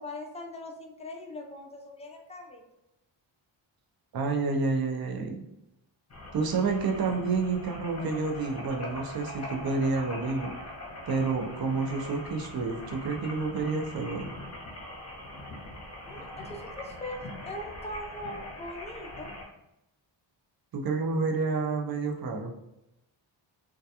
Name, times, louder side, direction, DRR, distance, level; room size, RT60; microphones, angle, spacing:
voice 1, 0.0-2.6 16.1-19.3, left 1 dB, 15° left, 2 dB, 0.3 m, -41 dB
voice 2, 4.1-5.4 6.3-10.6 11.1-14.3 20.7-22.5, right 4 dB, 50° right, 3 dB, 0.5 m, -29 dB
sound 1, 6.1-19.4, left 1 dB, 30° left, 0.7 m, -42 dB
2.3 x 2.2 x 2.7 m, 0.86 s
wide cardioid pair, 90°, 49 cm